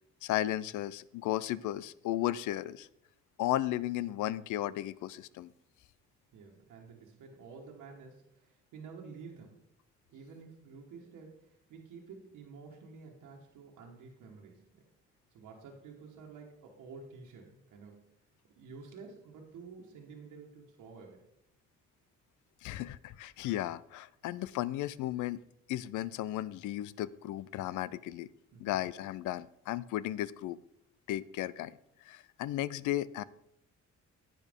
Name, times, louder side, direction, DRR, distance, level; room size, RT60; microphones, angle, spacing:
voice 1, 0.2-2.9 3.4-5.5 22.6-25.4 25.7-28.3 28.6-30.6 31.1-31.8 32.0-33.2, left 14 dB, 80° left, 20 dB, 0.5 m, -35 dB
voice 2, 6.3-9.6 10.1-14.8 15.3-18.0 18.5-21.2 28.5-28.8, right 5 dB, 85° right, -1 dB, 1.5 m, -50 dB
10.5 x 8.6 x 3.6 m, 0.80 s
cardioid pair, 90°, 30 cm